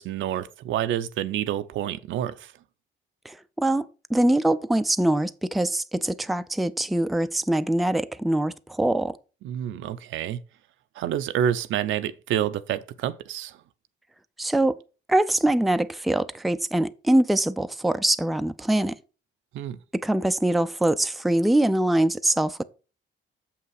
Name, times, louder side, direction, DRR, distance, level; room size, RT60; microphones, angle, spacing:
voice 1, 0.0-2.5 9.4-10.4 11.0-13.6 19.5-19.8, right 10 dB, 80° right, 0.6 m, -28 dB
voice 2, 3.3-9.2 14.4-14.8 15.1-19.0 19.9-22.6, right 1 dB, ahead, 0.4 m, -23 dB
7.0 x 5.7 x 4.7 m
cardioid pair, 90°, 20 cm